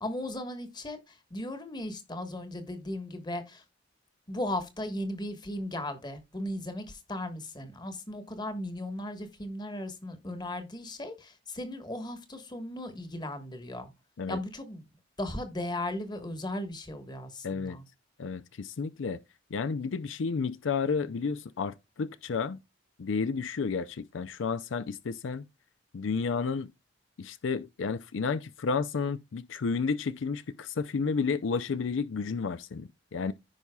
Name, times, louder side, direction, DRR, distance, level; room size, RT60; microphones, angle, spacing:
voice 1, 0.0-3.6 4.3-13.9 14.3-14.8 15.2-17.8, left 1 dB, 20° left, 1.4 m, -36 dB
voice 2, 17.4-17.8 18.2-19.2 19.5-22.6 23.0-25.4 25.9-26.7 27.2-33.3, left 5 dB, 70° left, 0.4 m, -31 dB
15.0 x 5.4 x 2.3 m
head